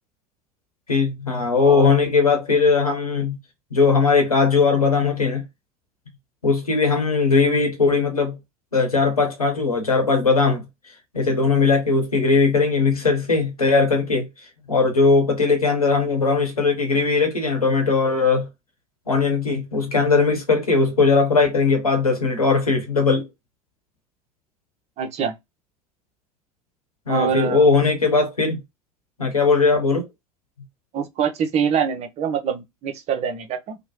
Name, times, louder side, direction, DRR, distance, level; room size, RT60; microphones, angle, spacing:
voice 1, 0.9-3.3 3.7-5.4 6.4-8.4 8.7-10.6 11.1-14.3 14.7-18.5 19.1-23.3 27.1-28.6 29.2-30.1, left 4 dB, 85° left, 1.0 m, -19 dB
voice 2, 1.6-1.9 25.0-25.3 27.1-27.7 30.9-33.8, right 7 dB, 35° right, 0.6 m, -24 dB
2.9 x 2.1 x 3.1 m
figure-of-eight pair, 75°, 18 cm